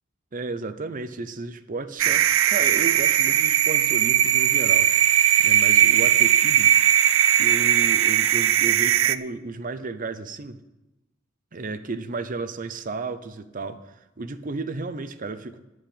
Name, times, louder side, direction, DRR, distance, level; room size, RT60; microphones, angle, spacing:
voice 1, 0.3-4.9 5.4-6.7 7.4-10.6 11.5-15.6, right 3 dB, 40° right, 11 dB, 0.7 m, -33 dB
sound 1, 2.0-9.2, right 11 dB, 70° right, 0.4 m, -19 dB
9.6 x 6.4 x 8.5 m, 0.97 s
head